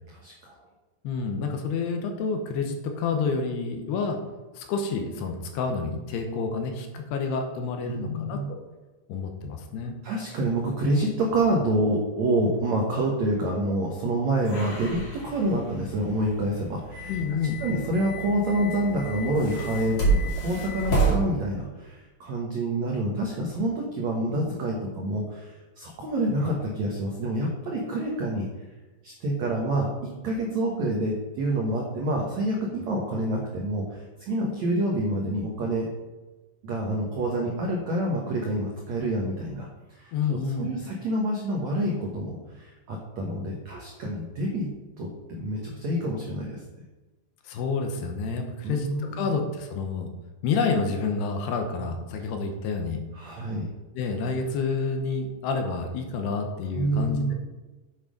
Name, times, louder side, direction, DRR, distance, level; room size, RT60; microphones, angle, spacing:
voice 1, 0.1-0.5 7.9-8.5 10.0-17.1 17.6-28.5 29.0-35.9 36.6-44.7 45.0-46.6 48.6-49.3 52.2-52.3 53.1-53.7 56.7-57.3, right 1 dB, 90° right, -1 dB, 1.5 m, -27 dB
voice 2, 1.0-4.2 4.5-8.6 9.1-9.9 17.1-17.6 40.1-40.7 47.4-50.1 50.4-53.0 53.9-57.3, left 4 dB, 75° left, 4 dB, 2.7 m, -29 dB
sound 1, 14.4-21.2, right 3 dB, 40° left, 3.1 m, -30 dB
8.2 x 7.3 x 5.1 m, 1.2 s
omnidirectional pair, 5.2 m